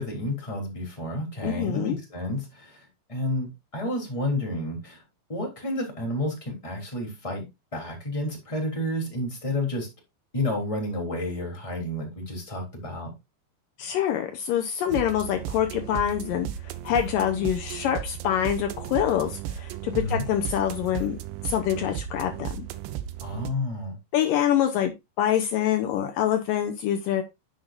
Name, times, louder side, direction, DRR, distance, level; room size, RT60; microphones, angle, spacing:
voice 1, 0.0-5.0 5.3-9.9 10.3-13.1 19.9-20.2 23.2-24.0, left 1 dB, 10° left, 2.4 m, -30 dB
voice 2, 1.4-2.0 13.8-22.7 24.1-24.9 25.2-27.2, left 10 dB, 90° left, 1.9 m, -26 dB
sound 1, 14.9-23.5, right 11 dB, 85° right, 3.0 m, -35 dB
10.5 x 7.7 x 2.5 m
omnidirectional pair, 5.1 m